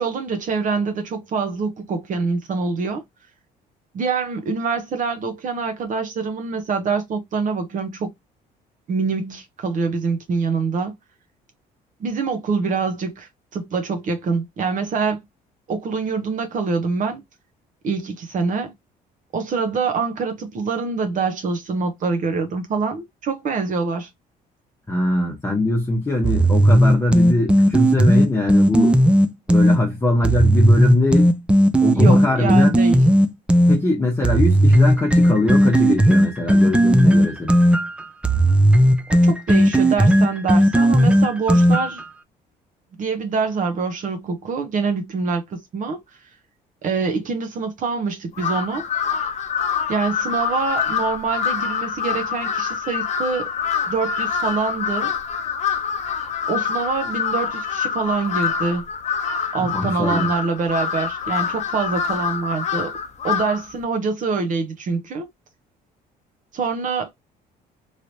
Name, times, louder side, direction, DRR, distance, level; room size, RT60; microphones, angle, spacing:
voice 1, 0.0-3.0 3.9-8.1 8.9-10.9 12.0-15.2 15.7-17.2 17.8-18.7 19.3-24.1 31.9-33.0 39.2-42.0 43.0-46.0 46.8-48.9 49.9-53.5 53.9-55.1 56.5-58.8 59.5-62.9 63.2-65.3 66.5-67.1, right 4 dB, 50° right, 0.8 m, -25 dB
voice 2, 24.9-29.0 29.5-31.3 31.8-32.8 33.7-37.6 59.6-60.3, left 2 dB, 15° left, 0.9 m, -21 dB
sound 1, 26.2-29.8 30.2-33.8 34.2-42.0, equal, 5° right, 0.4 m, -15 dB
Crow, 48.3-63.7, left 7 dB, 40° left, 0.7 m, -25 dB
3.2 x 2.8 x 2.7 m
cardioid pair, 110°, 17 cm